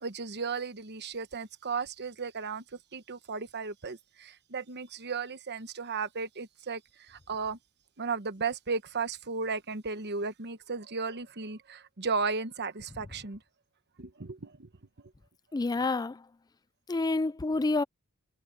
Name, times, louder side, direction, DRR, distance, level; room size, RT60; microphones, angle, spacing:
voice 1, 0.0-2.6 2.9-6.8 7.1-7.6 8.0-13.4 14.0-14.7, right 4 dB, 50° right, 1.1 m, -35 dB
voice 2, 15.5-16.2 16.9-17.8, left 3 dB, 20° left, 0.4 m, -28 dB
head